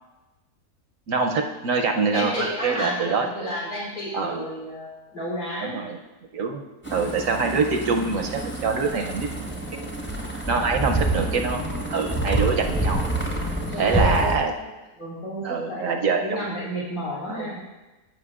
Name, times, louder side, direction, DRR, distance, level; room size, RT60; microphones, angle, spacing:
voice 1, 1.1-3.6 4.1-4.5 5.6-6.0 6.3-6.6 6.9-9.9 10.5-13.0 13.7-14.6 15.4-16.4 17.3-17.6, right 4 dB, 65° right, 4 dB, 0.9 m, -25 dB
voice 2, 2.1-5.8 13.7-14.5 15.0-15.9 16.2-17.6, equal, 85° left, -8 dB, 3.8 m, -31 dB
sound 1, 6.8-14.4, right 2 dB, 10° left, 0.8 m, -27 dB
14.5 x 5.8 x 2.4 m, 1.1 s
omnidirectional pair, 1.7 m